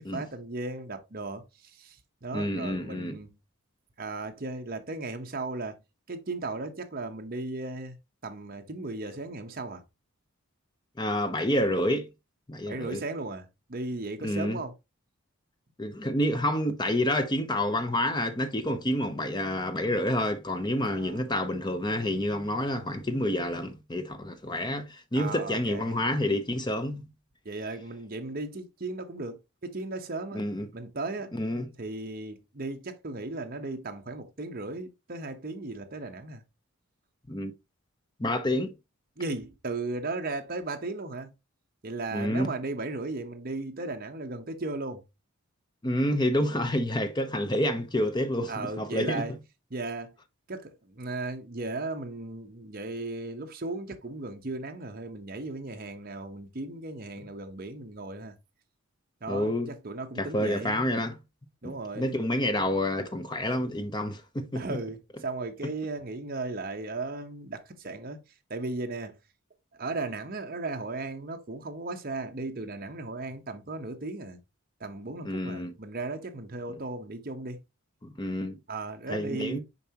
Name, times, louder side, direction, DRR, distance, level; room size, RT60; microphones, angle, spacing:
voice 1, 0.0-1.4 1.8-3.4 4.0-5.8 6.1-8.0 8.2-9.8 12.7-14.7 20.8-21.2 25.1-26.0 27.4-30.4 30.7-31.3 31.8-36.4 39.2-41.3 41.8-45.0 48.5-49.3 49.7-50.1 50.5-58.3 59.2-60.8 61.6-62.2 64.5-68.2 68.5-69.2 69.8-74.4 74.8-77.6 78.7-79.6, right 2 dB, 40° right, 0.9 m, -36 dB
voice 2, 2.3-3.2 11.0-12.1 12.5-13.0 14.2-14.6 15.8-27.1 30.3-30.7 31.3-31.7 37.3-37.5 38.2-38.7 42.1-42.5 45.8-49.4 59.3-59.7 60.2-61.2 61.6-64.8 65.6-65.7 75.2-75.7 76.7-76.8 78.0-78.6 79.1-79.6, left 1 dB, 20° left, 0.7 m, -28 dB
6.9 x 4.7 x 2.9 m
head